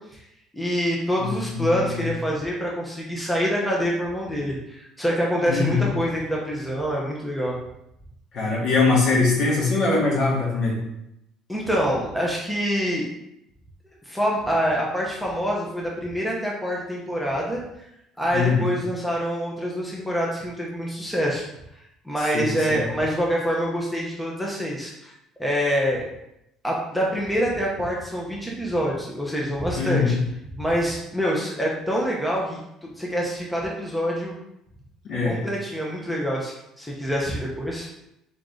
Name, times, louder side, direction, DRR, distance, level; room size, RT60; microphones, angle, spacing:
voice 1, 0.5-7.6 11.5-13.1 14.1-17.6 18.2-21.4 22.1-25.1 25.4-26.1 26.6-30.2 30.6-32.6 32.9-34.3 35.2-37.9, equal, 5° left, -3 dB, 0.8 m, -26 dB
voice 2, 1.2-2.1 5.5-5.9 8.3-10.8 18.3-18.7 22.3-22.8 29.8-30.2 35.0-35.4, left 4 dB, 55° left, -4 dB, 1.7 m, -22 dB
3.9 x 3.7 x 3.7 m, 0.83 s
cardioid pair, 130°, 0 cm